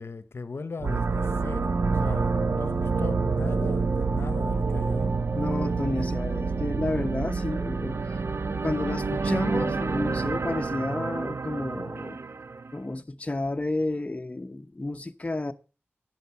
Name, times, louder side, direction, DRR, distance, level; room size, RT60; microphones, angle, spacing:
voice 1, 0.0-5.2, left 4 dB, 70° left, 0.9 m, -37 dB
sound 1, 0.8-12.7, right 4 dB, 65° right, 0.8 m, -28 dB
voice 2, 5.3-12.2 12.7-15.5, left 2 dB, 30° left, 0.9 m, -31 dB
11.0 x 7.8 x 7.0 m
wide cardioid pair, 70°, 4 cm